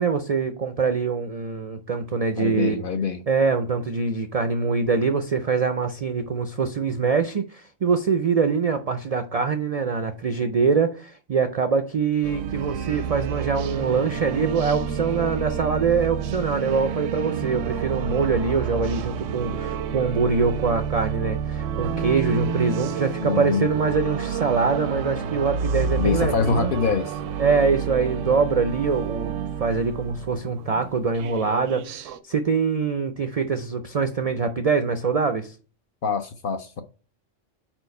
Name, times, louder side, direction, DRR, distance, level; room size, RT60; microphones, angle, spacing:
voice 1, 0.0-2.8 3.3-26.7 27.4-35.5, right 5 dB, 60° right, 0.4 m, -24 dB
voice 2, 2.4-3.2 23.2-23.7 26.0-27.2 36.0-36.8, left 5 dB, 60° left, 0.6 m, -24 dB
sound 1, 12.2-32.2, right 7 dB, 85° right, 0.9 m, -29 dB
4.5 x 4.4 x 5.2 m
omnidirectional pair, 1.3 m